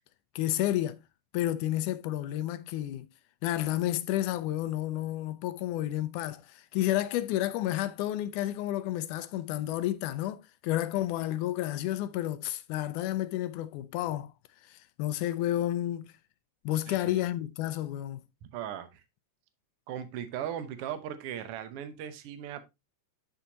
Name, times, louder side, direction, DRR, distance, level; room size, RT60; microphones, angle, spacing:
voice 1, 0.4-1.0 1.3-3.1 3.4-14.3 14.7-16.1 16.7-18.2, left 13 dB, 80° left, 1.9 m, -31 dB
voice 2, 16.9-17.2 18.5-19.0 19.9-22.6, right 10 dB, 75° right, 1.3 m, -38 dB
11.5 x 4.4 x 2.7 m
omnidirectional pair, 3.8 m